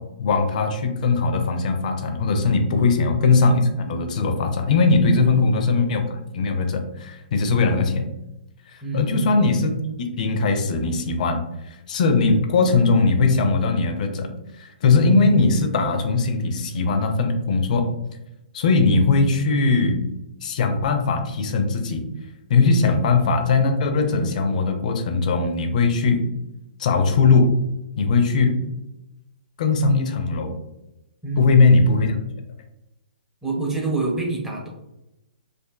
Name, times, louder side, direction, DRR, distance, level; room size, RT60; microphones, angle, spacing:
voice 1, 0.2-8.1 8.7-9.7 10.1-14.3 14.6-17.9 18.5-20.0 20.4-22.0 22.5-26.3 26.8-27.6 28.0-28.6 29.6-30.5 31.4-32.2, left 3 dB, 50° left, 5 dB, 0.5 m, -20 dB
voice 2, 5.0-5.6 8.8-9.4 22.7-23.0 31.2-31.8 33.4-34.7, right 3 dB, 5° right, -2 dB, 0.6 m, -28 dB
2.5 x 2.5 x 2.2 m, 0.90 s
hypercardioid pair, 130°, 5 cm